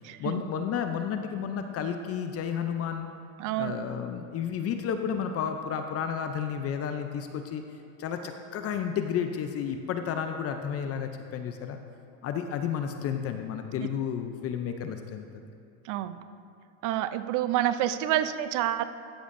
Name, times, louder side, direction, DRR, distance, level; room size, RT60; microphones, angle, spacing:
voice 1, 0.2-3.1 3.6-7.6 8.0-11.8 12.2-15.5, left 8 dB, 35° left, 7 dB, 0.5 m, -32 dB
voice 2, 3.4-3.7 15.8-16.2 16.8-18.8, right 12 dB, 50° right, 12 dB, 0.5 m, -28 dB
14.0 x 7.0 x 2.6 m, 2.7 s
supercardioid pair, 115°, 42 cm